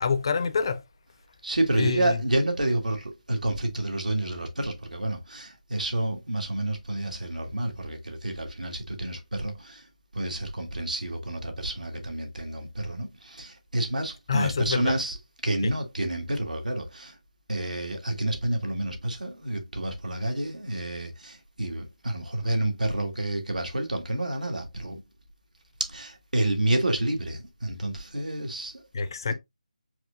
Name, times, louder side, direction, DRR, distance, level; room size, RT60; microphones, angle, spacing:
voice 1, 0.0-0.8 1.8-2.2 14.3-14.9 15.6-15.7 28.9-29.3, left 5 dB, 35° left, 0.4 m, -26 dB
voice 2, 1.4-9.9 10.1-15.2 15.4-17.1 17.5-25.0 25.8-28.8, right 1 dB, 90° right, 1.6 m, -29 dB
4.7 x 3.6 x 2.4 m
figure-of-eight pair, 165°, 4 cm